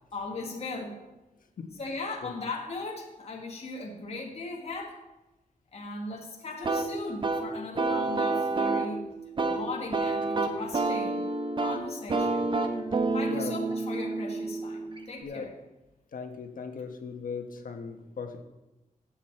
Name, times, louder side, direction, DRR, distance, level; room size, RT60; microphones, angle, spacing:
voice 1, 0.1-1.0 1.8-5.0 5.7-9.0 9.4-11.2 11.6-12.5 13.1-15.5, left 2 dB, 45° left, 0 dB, 1.6 m, -38 dB
sound 1, 6.6-15.2, right 3 dB, 35° right, 1.0 m, -29 dB
voice 2, 15.2-15.5 16.1-18.4, left 5 dB, 75° left, 5 dB, 1.3 m, -38 dB
15.5 x 7.5 x 4.4 m, 1.0 s
wide cardioid pair, 180°, 14 cm